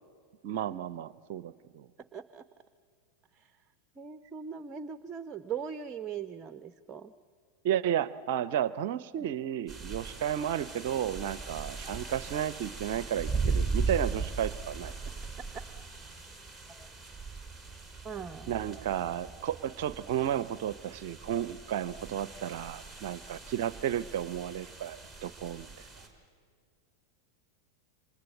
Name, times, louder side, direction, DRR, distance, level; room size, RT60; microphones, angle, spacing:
voice 1, 0.4-1.9 7.6-14.9 18.5-25.8, right 10 dB, 50° right, 18 dB, 0.6 m, -33 dB
voice 2, 2.1-2.4 3.3-3.6 4.0-7.1 16.7-16.9 18.0-18.5, right 7 dB, 25° right, 12 dB, 0.8 m, -40 dB
sound 1, 9.7-26.1, right 4 dB, 5° left, 4.8 m, -38 dB
28.0 x 26.0 x 8.0 m, 2.2 s
figure-of-eight pair, 90°, 0 cm